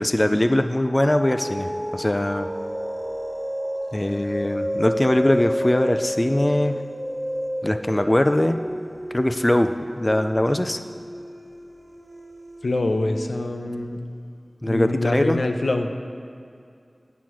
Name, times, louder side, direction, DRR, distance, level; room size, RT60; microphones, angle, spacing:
voice 1, 0.0-2.5 3.9-6.8 7.6-8.6 9.1-9.7 10.0-10.8 14.6-15.4, left 1 dB, 25° left, 7 dB, 0.3 m, -21 dB
sound 1, 0.8-13.6, equal, 15° right, 0.7 m, -31 dB
voice 2, 12.6-14.0 14.6-15.9, left 2 dB, 85° left, 5 dB, 0.5 m, -24 dB
8.7 x 5.8 x 4.6 m, 2.4 s
wide cardioid pair, 55°, 0 cm